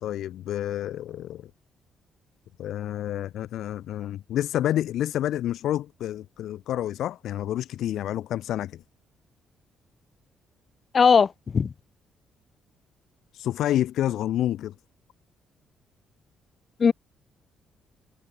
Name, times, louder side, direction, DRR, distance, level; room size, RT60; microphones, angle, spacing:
voice 1, 0.0-1.5 2.6-8.8 13.3-14.7, left 12 dB, 80° left, 2.1 m, -29 dB
voice 2, 10.9-11.3 11.5-11.7 16.8-16.9, left 6 dB, 40° left, 0.4 m, -17 dB
cardioid pair, 90°, 0 cm